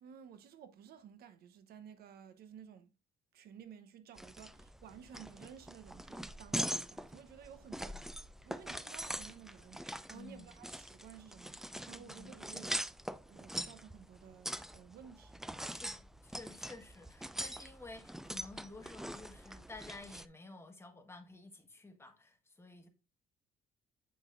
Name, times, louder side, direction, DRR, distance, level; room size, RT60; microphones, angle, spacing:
voice 1, 0.0-2.9 3.3-8.0 8.4-12.9 13.2-15.5, right 8 dB, 65° right, 1.0 m, -54 dB
sound 1, 4.2-20.3, right 1 dB, ahead, 0.4 m, -43 dB
voice 2, 10.1-10.5 12.0-12.3 15.7-22.9, left 2 dB, 15° left, 1.4 m, -52 dB
8.8 x 6.0 x 2.5 m
cardioid pair, 110°, 17 cm